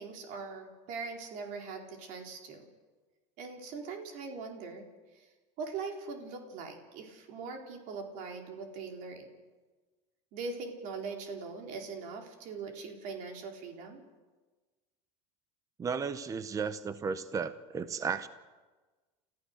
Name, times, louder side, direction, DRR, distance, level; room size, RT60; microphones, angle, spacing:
voice 1, 0.0-2.6 3.4-4.9 5.1-5.3 5.6-9.3 10.3-14.0, right 4 dB, 60° right, 3 dB, 4.2 m, -41 dB
voice 2, 15.8-18.3, right 5 dB, 20° right, 13 dB, 0.9 m, -34 dB
30.0 x 14.5 x 6.7 m, 1.3 s
supercardioid pair, 125°, 15 cm